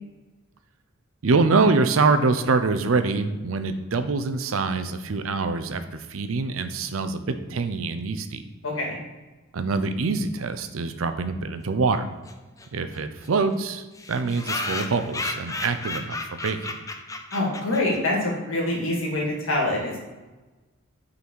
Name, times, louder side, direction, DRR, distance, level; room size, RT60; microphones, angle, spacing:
voice 1, 1.2-8.4 9.5-12.1 12.7-16.7, right 4 dB, 90° right, 9 dB, 0.6 m, -25 dB
voice 2, 8.6-9.0 17.3-20.0, left 1 dB, 80° left, -2 dB, 1.9 m, -25 dB
sound 1, 12.2-12.3 12.6-12.7 12.9-13.0 13.2-13.3 13.9-18.2, left 2 dB, 15° left, 0.4 m, -33 dB
5.7 x 4.0 x 4.5 m, 1.2 s
head